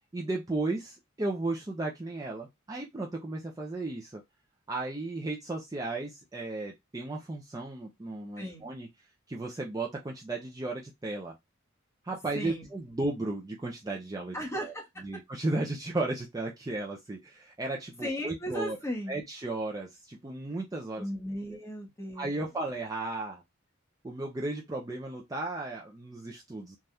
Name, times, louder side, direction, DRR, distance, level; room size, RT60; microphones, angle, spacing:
voice 1, 0.1-4.2 4.7-8.9 9.3-11.3 12.0-14.4 14.6-14.7 15.0-18.8 19.1-21.0 22.2-23.4 24.0-26.8, right 2 dB, 20° right, 0.5 m, -34 dB
voice 2, 8.4-8.7 12.3-12.7 14.3-15.0 18.0-19.2 21.0-22.5, equal, 15° left, 1.1 m, -36 dB
3.3 x 2.3 x 2.6 m
head